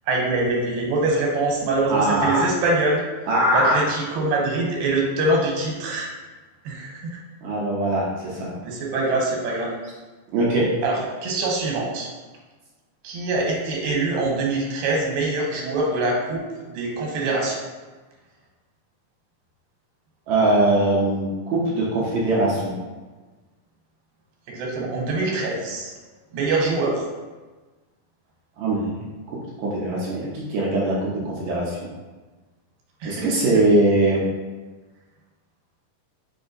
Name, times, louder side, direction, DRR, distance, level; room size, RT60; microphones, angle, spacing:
voice 1, 0.1-3.0 3.5-6.1 6.6-7.2 8.6-9.7 10.8-12.1 13.0-17.6 24.5-25.9 26.3-27.0 33.0-33.6, right 2 dB, 90° right, -1 dB, 2.6 m, -24 dB
voice 2, 1.9-2.4 3.3-3.8 7.4-8.5 10.3-10.7 20.3-22.7 28.6-28.8 29.3-31.8 33.0-34.2, right 1 dB, 70° right, -5 dB, 1.8 m, -21 dB
7.0 x 2.7 x 2.5 m, 1.3 s
omnidirectional pair, 3.9 m